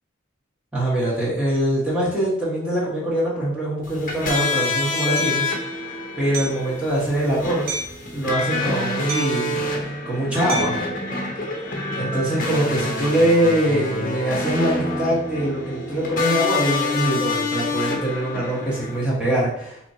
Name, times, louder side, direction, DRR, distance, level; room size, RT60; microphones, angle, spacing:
voice 1, 0.7-5.5 5.8-7.8 8.1-9.7 10.0-10.7 11.9-19.8, right 1 dB, 5° right, -8 dB, 1.3 m, -23 dB
sound 1, 3.8-19.0, left 3 dB, 45° left, 0.8 m, -27 dB
Hammer, 5.2-5.4 6.3-6.7 7.7-8.0 9.1-9.5 10.5-10.9, right 3 dB, 55° right, 0.7 m, -30 dB
4.2 x 3.0 x 2.8 m, 0.77 s
head